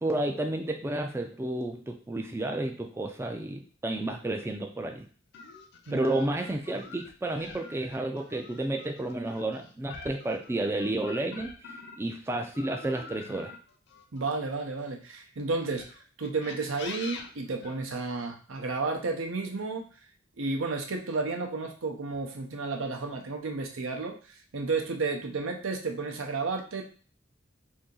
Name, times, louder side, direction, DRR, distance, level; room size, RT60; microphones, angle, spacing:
voice 1, 0.0-5.1 5.9-13.5, right 1 dB, 15° right, 4 dB, 0.3 m, -31 dB
sound 1, 5.3-12.1 12.5-14.9 15.6-18.2, left 4 dB, 60° left, 0.5 m, -46 dB
voice 2, 14.1-15.9 16.2-19.9 20.4-26.8, right 3 dB, 85° right, 3 dB, 0.6 m, -32 dB
2.7 x 2.7 x 3.7 m, 0.41 s
head